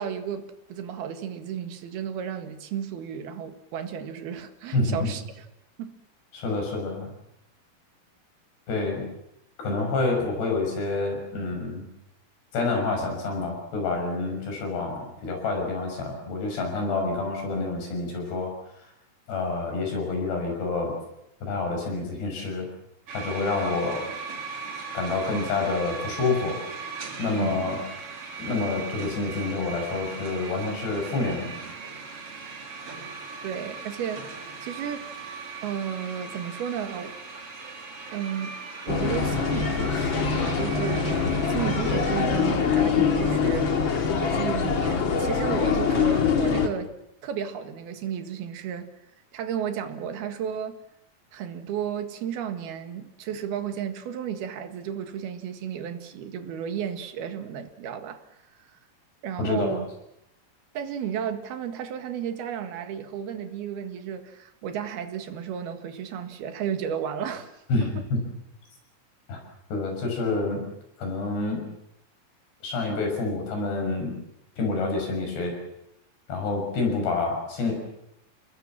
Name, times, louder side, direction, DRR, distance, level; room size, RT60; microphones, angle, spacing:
voice 1, 0.0-5.5 5.8-5.9 8.7-8.8 27.4-27.7 33.4-35.1 35.6-37.2 38.1-46.9 47.2-48.9 49.3-50.8 51.3-58.2 58.6-58.7 59.2-59.9 60.8-67.5, right 8 dB, 75° right, 3.7 m, -33 dB
voice 2, 4.7-5.1 6.3-7.1 8.7-9.1 9.6-11.9 12.5-18.5 19.3-20.9 21.4-22.7 23.1-24.0 24.9-26.6 27.2-27.8 28.4-31.6 59.4-59.7 67.7-68.3 69.3-69.4 69.7-70.7 71.0-71.7 72.6-74.2 74.6-75.5 76.3-77.7, left 3 dB, 90° left, 8.4 m, -28 dB
sound 1, 23.1-42.3, right 4 dB, 40° right, 3.5 m, -39 dB
sound 2, 38.9-46.7, left 6 dB, 40° left, 2.0 m, -24 dB
29.5 x 20.0 x 7.5 m
omnidirectional pair, 4.6 m